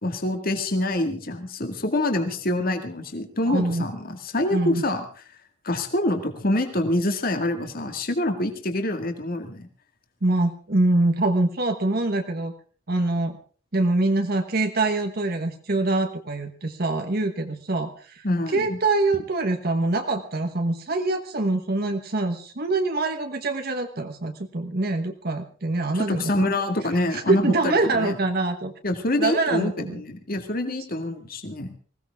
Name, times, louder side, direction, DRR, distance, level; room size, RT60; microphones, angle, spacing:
voice 1, 0.0-5.1 5.6-9.7 18.2-18.8 25.9-28.2 28.8-31.7, left 1 dB, 45° left, 6 dB, 1.9 m, -26 dB
voice 2, 3.5-3.8 4.5-4.8 10.2-12.5 12.9-13.4 13.7-18.2 18.5-26.3 27.1-28.7 29.2-30.0, right 2 dB, 50° right, 5 dB, 1.2 m, -24 dB
20.5 x 16.5 x 3.6 m, 0.40 s
head